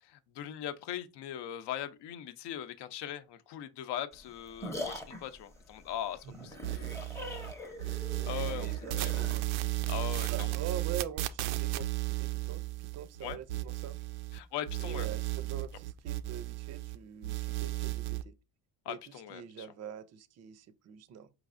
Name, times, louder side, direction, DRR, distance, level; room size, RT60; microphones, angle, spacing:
voice 1, 0.0-6.8 8.2-9.3 9.9-10.6 13.2-13.4 14.3-15.1 18.8-19.7, left 11 dB, 60° left, 0.7 m, -40 dB
sound 1, 4.1-10.2, left 1 dB, 5° left, 0.7 m, -43 dB
voice 2, 6.2-6.7 8.5-9.5 10.3-14.0 14.8-18.3 18.9-21.3, right 9 dB, 35° right, 0.5 m, -44 dB
sound 2, 6.6-7.5 7.8-14.4 14.7-17.0 17.2-18.2, right 19 dB, 85° right, 0.5 m, -34 dB
4.8 x 3.2 x 2.5 m
supercardioid pair, 100°, 45 cm